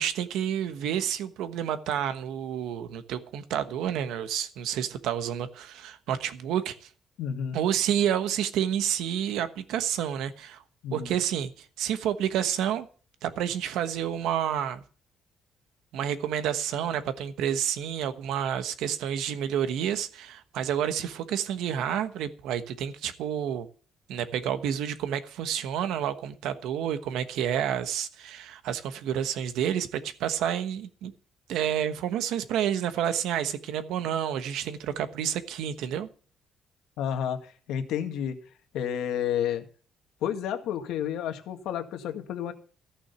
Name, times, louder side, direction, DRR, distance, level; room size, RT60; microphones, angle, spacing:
voice 1, 0.0-6.9 7.5-10.6 10.9-12.9 13.2-14.8 15.9-23.7 24.1-31.1 31.5-36.1, right 9 dB, 90° right, 1.2 m, -29 dB
voice 2, 7.2-7.6 10.8-11.2 37.0-38.4 38.7-39.6 40.2-42.5, left 9 dB, 85° left, 1.8 m, -30 dB
14.5 x 6.3 x 8.1 m
cardioid pair, 135°, 0 cm